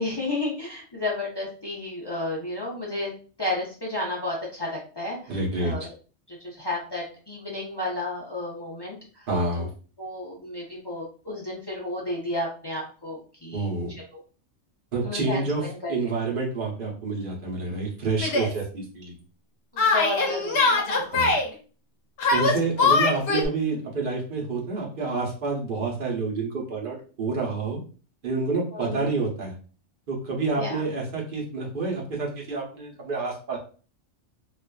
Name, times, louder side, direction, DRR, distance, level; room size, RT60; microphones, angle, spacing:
voice 1, 0.0-3.1 3.4-5.3 5.6-5.9 6.3-9.3 9.5-9.7 10.0-13.7 15.0-16.2 19.7-21.3 28.7-29.1 30.6-30.8, left 2 dB, 40° left, -5 dB, 0.3 m, -32 dB
voice 2, 5.3-5.7 9.3-9.7 13.5-13.9 14.9-15.6 15.9-19.1 21.1-21.4 22.3-27.8 28.2-29.5 30.1-33.6, right 3 dB, 50° right, -2 dB, 0.9 m, -28 dB
Yell, 18.2-18.5 19.8-21.5 22.2-23.5, left 3 dB, 60° left, 0.8 m, -22 dB
2.4 x 2.4 x 2.2 m, 0.38 s
omnidirectional pair, 1.3 m